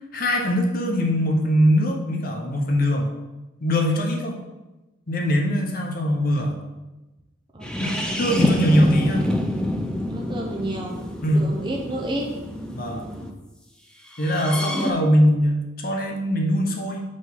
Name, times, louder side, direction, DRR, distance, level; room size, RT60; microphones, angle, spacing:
voice 1, 0.1-3.1 3.6-4.4 5.1-6.5 7.8-9.3 11.2-11.5 12.7-13.0 14.2-17.0, equal, 45° left, 1 dB, 0.8 m, -21 dB
voice 2, 7.5-8.2 10.1-11.0 11.3-12.3, right 1 dB, 20° right, 0 dB, 0.8 m, -31 dB
sound 1, 7.6-13.3 14.1-14.9, left 1 dB, 5° left, 0.4 m, -27 dB
5.1 x 4.0 x 5.5 m, 1.1 s
head